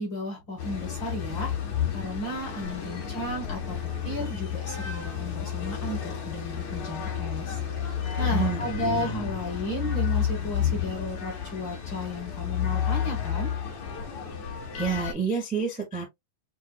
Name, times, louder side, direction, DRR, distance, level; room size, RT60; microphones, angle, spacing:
voice 1, 0.0-1.5 1.9-3.8 4.0-13.5, equal, 45° left, 1.7 m, -34 dB
sound 1, 0.6-15.1, left 8 dB, 65° left, 3.3 m, -31 dB
voice 2, 8.3-9.1 14.7-16.1, right 6 dB, 5° right, 0.7 m, -29 dB
7.3 x 2.5 x 2.4 m
omnidirectional pair, 3.8 m